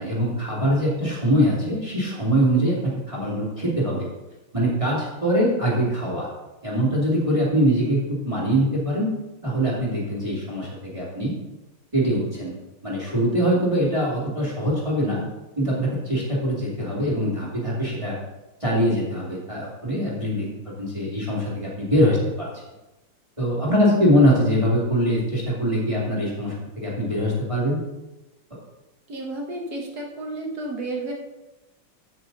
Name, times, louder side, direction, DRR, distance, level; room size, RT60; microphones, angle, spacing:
voice 1, 0.0-4.1 4.5-6.3 6.6-8.0 8.2-9.1 9.4-11.3 11.9-12.5 12.8-15.2 15.6-18.2 18.6-20.5 20.8-22.5 23.4-27.8, equal, 15° right, -5 dB, 2.5 m, -23 dB
voice 2, 29.1-31.1, right 2 dB, 50° right, 1 dB, 1.9 m, -31 dB
14.0 x 6.0 x 4.1 m, 1.0 s
omnidirectional pair, 2.4 m